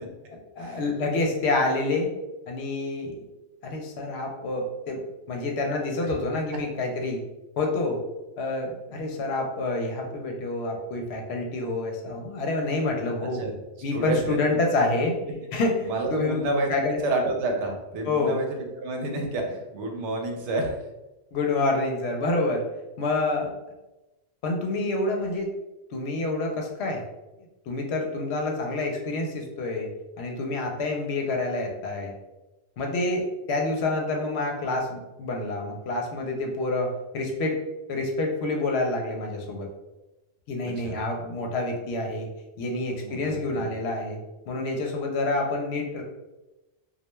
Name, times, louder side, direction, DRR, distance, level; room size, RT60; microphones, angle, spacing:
voice 1, 0.3-2.1 2.5-3.2 3.6-5.0 5.3-7.2 7.6-8.0 8.4-13.4 13.8-15.1 15.5-16.4 16.7-17.0 18.0-18.4 21.3-22.6 23.0-23.5 24.4-25.5 25.9-27.0 27.7-29.9 30.2-32.1 32.8-37.6 37.9-39.7 40.5-42.3 42.6-44.2 44.5-46.0, left 2 dB, 70° left, 1 dB, 0.8 m, -27 dB
voice 2, 13.2-13.5 13.9-14.4 15.8-16.7 17.0-18.5 18.8-20.8 40.6-41.0 43.0-43.7, right 2 dB, 85° right, 2 dB, 0.9 m, -29 dB
2.2 x 2.2 x 3.0 m, 1.0 s
omnidirectional pair, 1.2 m